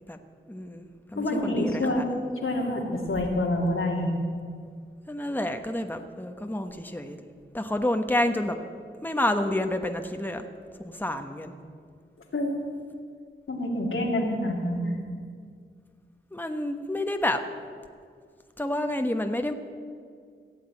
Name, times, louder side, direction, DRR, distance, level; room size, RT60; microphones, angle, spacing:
voice 1, 0.5-2.0 5.1-7.2 7.5-8.6 9.0-10.4 10.8-11.5 16.3-17.4 18.6-19.5, left 1 dB, 10° left, 6 dB, 1.1 m, -29 dB
voice 2, 1.2-2.1 2.4-4.1 12.3-12.5 13.5-14.9, left 1 dB, 85° left, -1 dB, 2.4 m, -27 dB
16.0 x 7.9 x 8.9 m, 2.1 s
cardioid pair, 40°, 21 cm